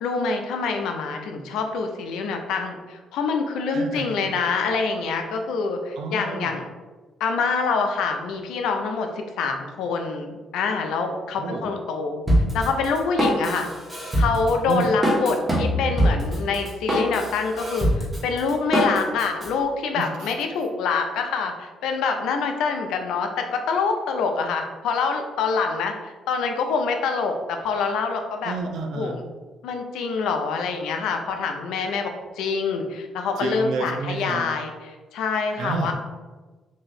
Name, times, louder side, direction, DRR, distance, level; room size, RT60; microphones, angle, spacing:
voice 1, 0.0-6.6 7.2-12.2 12.5-13.7 14.2-28.5 28.9-29.2 29.6-35.9, left 4 dB, 85° left, 4 dB, 0.5 m, -26 dB
voice 2, 3.7-4.3 6.0-6.5 11.4-11.7 14.7-14.9 19.9-20.3 28.4-29.2 33.4-34.4 35.6-35.9, right 4 dB, 80° right, 3 dB, 0.5 m, -30 dB
Drum kit, 12.3-19.5, equal, 20° right, 1.3 m, -23 dB
3.1 x 2.7 x 4.0 m, 1.3 s
cardioid pair, 90°, 0 cm